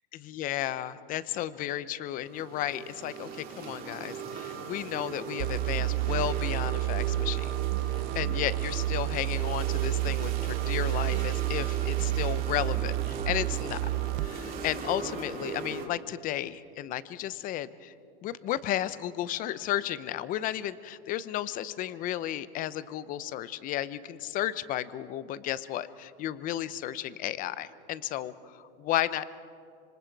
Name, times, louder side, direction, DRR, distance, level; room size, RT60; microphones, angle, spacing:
voice 1, 0.2-7.5 7.9-13.8 14.2-17.9 18.2-29.2, left 12 dB, 30° left, 16 dB, 0.7 m, -33 dB
sound 1, 2.1-15.9, right 6 dB, 30° right, 3.0 m, -39 dB
sound 2, 5.4-14.3, right 19 dB, 50° right, 0.7 m, -30 dB
26.5 x 25.5 x 4.7 m, 2.5 s
supercardioid pair, 140°, 30 cm